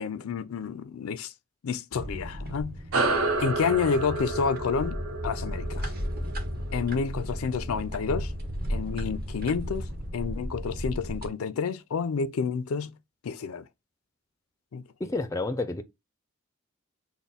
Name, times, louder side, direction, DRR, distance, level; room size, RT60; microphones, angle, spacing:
voice 1, 0.0-1.3 1.6-2.8 3.4-5.9 6.7-8.3 8.7-9.9 10.1-12.9 13.2-13.7 14.7-14.8, left 5 dB, 85° left, 0.4 m, -29 dB
sound 1, 1.9-11.3, equal, 45° right, 0.9 m, -35 dB
sound 2, 2.9-7.8, right 2 dB, 90° right, 0.8 m, -30 dB
voice 2, 15.0-15.8, left 2 dB, 15° left, 0.3 m, -29 dB
3.5 x 2.1 x 4.0 m
head